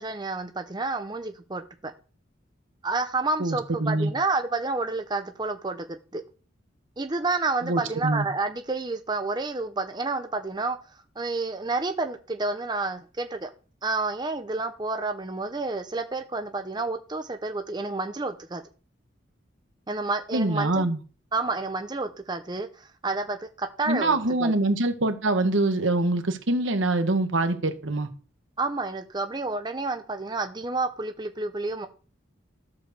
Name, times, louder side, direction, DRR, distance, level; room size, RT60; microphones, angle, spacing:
voice 1, 0.0-1.9 2.8-6.2 7.0-10.8 11.2-13.5 13.8-18.6 19.9-20.9 21.3-24.5 28.6-31.9, right 3 dB, 20° right, 0.7 m, -30 dB
voice 2, 3.4-4.1 7.6-8.3 20.3-21.0 23.9-28.1, right 2 dB, 75° right, 1.4 m, -24 dB
13.0 x 5.0 x 6.7 m
head